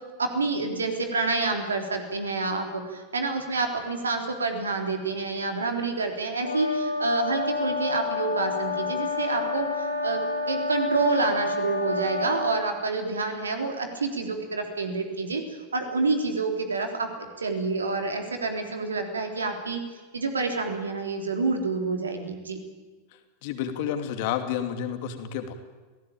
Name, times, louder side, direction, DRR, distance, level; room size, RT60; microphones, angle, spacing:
voice 1, 0.2-10.2 10.5-19.8 20.1-22.6, right 3 dB, 75° right, 5 dB, 3.7 m, -28 dB
sound 1, 6.4-12.6, left 3 dB, 85° left, 3.7 m, -29 dB
voice 2, 23.4-25.5, left 9 dB, 50° left, 7 dB, 2.7 m, -30 dB
26.5 x 17.5 x 8.9 m, 1.3 s
figure-of-eight pair, 90°, 0 cm